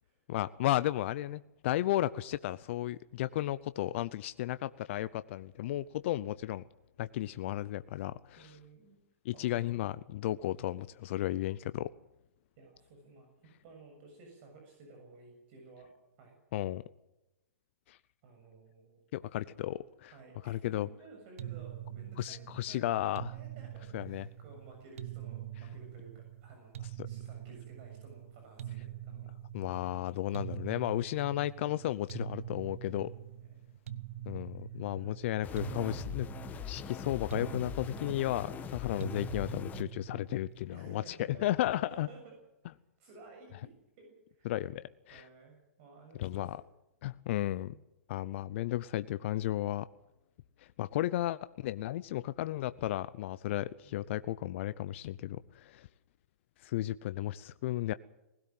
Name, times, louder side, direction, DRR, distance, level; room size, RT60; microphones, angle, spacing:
voice 1, 0.3-6.6 7.0-8.6 9.2-11.9 16.5-16.8 17.9-18.0 19.1-20.1 20.4-20.9 22.2-23.3 23.9-24.3 27.0-27.1 29.5-33.1 34.2-36.3 36.6-42.1 44.4-45.2 46.2-46.6 47.0-47.7 48.1-49.9 50.8-55.9 56.6-57.9, left 14 dB, 55° left, 0.7 m, -34 dB
voice 2, 8.4-9.0 9.3-9.7 12.6-15.9 16.2-16.4 18.2-19.0 20.1-22.9 23.3-29.3 33.4-33.6 34.7-35.2 40.7-42.3 43.0-43.7 44.0-44.7 45.1-46.5 53.8-54.2, right 3 dB, 50° right, 7.1 m, -55 dB
sound 1, 21.4-40.7, right 12 dB, 70° right, 1.1 m, -44 dB
sound 2, 35.4-39.8, left 8 dB, 20° left, 1.4 m, -42 dB
20.0 x 17.0 x 7.7 m
hypercardioid pair, 125°, 8 cm